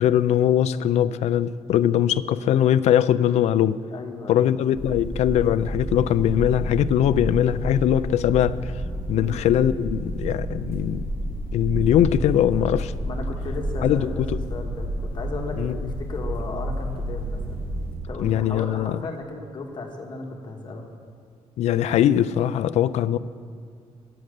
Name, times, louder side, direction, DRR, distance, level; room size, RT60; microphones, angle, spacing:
voice 1, 0.0-3.8 4.3-8.7 9.1-11.1 11.5-12.9 13.8-14.4 15.6-15.8 18.2-19.0 21.6-23.2, left 10 dB, 80° left, 0.4 m, -21 dB
voice 2, 3.9-4.5 9.1-9.4 13.0-14.2 14.5-17.6 18.1-20.9, left 3 dB, 45° left, 1.3 m, -35 dB
sound 1, 4.7-18.0, right 1 dB, 20° right, 3.2 m, -30 dB
11.0 x 8.6 x 6.5 m
wide cardioid pair, 170°, 11 cm